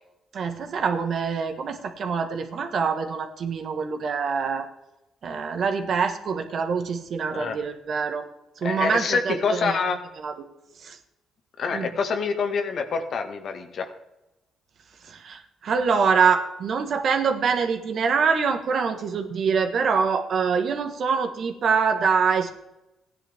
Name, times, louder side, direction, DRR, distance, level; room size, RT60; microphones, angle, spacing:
voice 1, 0.3-4.7 5.2-8.2 8.6-9.8 10.2-10.3 10.8-11.0 11.7-11.9 15.1-22.5, right 5 dB, 60° right, 6 dB, 1.5 m, -25 dB
voice 2, 8.6-10.0 11.6-13.9, left 5 dB, 60° left, 5 dB, 1.6 m, -26 dB
15.5 x 10.0 x 3.6 m, 0.93 s
cardioid pair, 90°, 0 cm